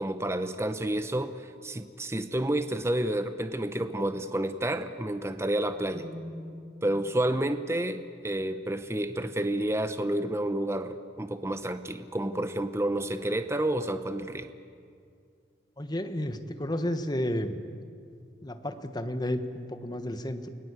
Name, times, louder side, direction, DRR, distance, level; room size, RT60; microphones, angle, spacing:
voice 1, 0.0-6.1 6.8-14.5, right 1 dB, 15° right, 10 dB, 0.8 m, -30 dB
sound 1, 5.9-9.8, left 1 dB, 90° right, 3.0 m, -47 dB
voice 2, 15.8-17.6 18.4-20.5, left 1 dB, 25° left, 9 dB, 1.3 m, -32 dB
29.0 x 19.0 x 8.2 m, 2.3 s
head